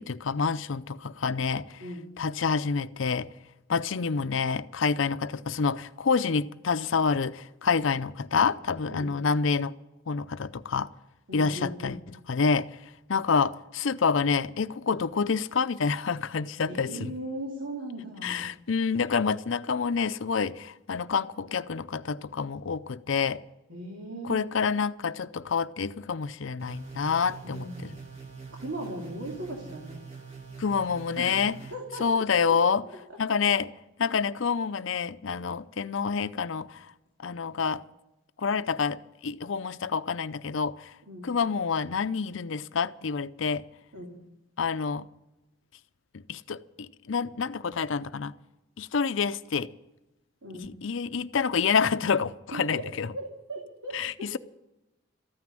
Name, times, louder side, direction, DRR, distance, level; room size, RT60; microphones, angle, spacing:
voice 1, 0.0-1.8 2.2-3.3 3.7-9.7 10.1-10.9 11.3-12.0 12.3-12.7 13.1-17.1 18.2-23.4 24.2-27.9 30.6-31.6 32.0-32.9 33.2-33.7 34.0-36.9 37.2-37.8 38.4-40.9 41.2-43.6 44.6-45.1 46.1-48.3 48.8-49.7 50.6-53.1 53.9-54.4, left 5 dB, 75° left, 0.5 m, -28 dB
voice 2, 1.8-2.1 8.9-9.2 11.3-12.0 16.7-18.5 23.7-24.5 27.4-28.0 28.6-30.0 31.2-31.4 31.7-32.6 33.1-33.4 41.1-41.3 43.9-44.1 50.4-50.7 52.5-52.9 53.1-54.4, right 1 dB, 75° right, 2.7 m, -38 dB
sound 1, 26.6-31.7, right 5 dB, 30° right, 2.5 m, -44 dB
14.5 x 9.5 x 9.2 m
head